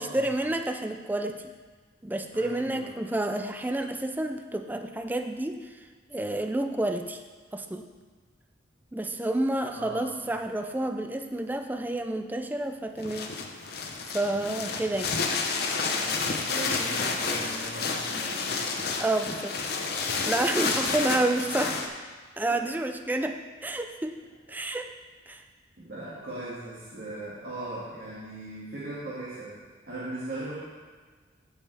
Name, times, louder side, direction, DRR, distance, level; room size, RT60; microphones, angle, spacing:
voice 1, 0.0-1.4 2.0-5.8 6.1-7.2 7.5-7.9 8.9-13.4 14.1-15.2 19.0-21.8 22.4-24.2 24.5-24.9 25.3-25.4, right 1 dB, 10° right, 6 dB, 0.4 m, -29 dB
voice 2, 2.3-2.9 9.7-10.3 14.3-14.8 15.8-19.0 20.5-21.0 22.5-22.6 25.8-29.5 29.8-30.5, right 2 dB, 60° right, -10 dB, 2.1 m, -39 dB
sound 1, 13.0-21.9, left 4 dB, 55° left, 0.8 m, -30 dB
15.5 x 5.2 x 3.4 m, 1.4 s
head